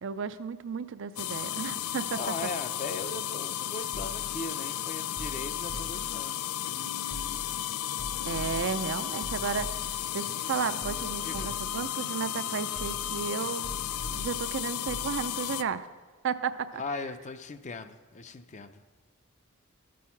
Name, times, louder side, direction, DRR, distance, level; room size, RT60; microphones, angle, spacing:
voice 1, 0.0-2.2 8.2-13.8 14.1-15.9 16.2-16.8, right 6 dB, 60° right, 12 dB, 0.5 m, -33 dB
sound 1, 1.2-15.6, left 11 dB, 90° left, 0.4 m, -34 dB
voice 2, 2.2-6.9 11.2-11.5 16.8-18.8, left 3 dB, 35° left, 10 dB, 0.5 m, -39 dB
sound 2, 3.9-4.4 5.2-6.2 7.1-7.6 8.0-10.1 10.8-11.9 12.7-13.3 13.6-15.1, equal, 70° left, 2.4 m, -42 dB
Human voice, 6.6-7.5 8.1-9.6 10.5-11.8, left 2 dB, 55° left, 0.9 m, -50 dB
13.5 x 6.3 x 5.7 m, 1.4 s
head